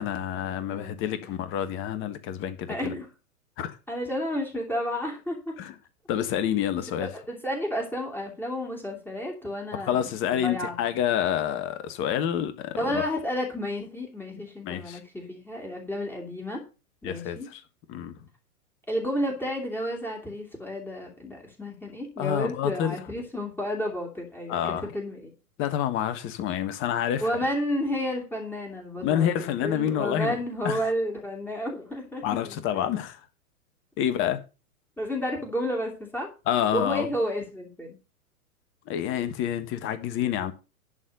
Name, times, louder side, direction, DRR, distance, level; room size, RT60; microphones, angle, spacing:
voice 1, 0.0-2.9 3.6-3.8 5.6-5.7 6.1-7.1 9.7-13.0 14.6-15.0 17.0-17.6 17.9-18.1 22.2-23.0 24.5-24.9 25.6-27.4 29.0-30.4 30.6-30.8 32.2-33.2 34.0-34.4 36.5-37.1 38.9-40.5, left 10 dB, 30° left, 1.4 m, -28 dB
voice 2, 0.6-1.4 2.7-3.1 3.9-5.6 7.0-10.8 12.7-16.6 17.0-17.5 18.9-25.3 27.2-32.9 35.0-36.3 36.7-38.0, equal, 5° left, 2.9 m, -31 dB
11.0 x 4.3 x 7.9 m
figure-of-eight pair, 115°, 43 cm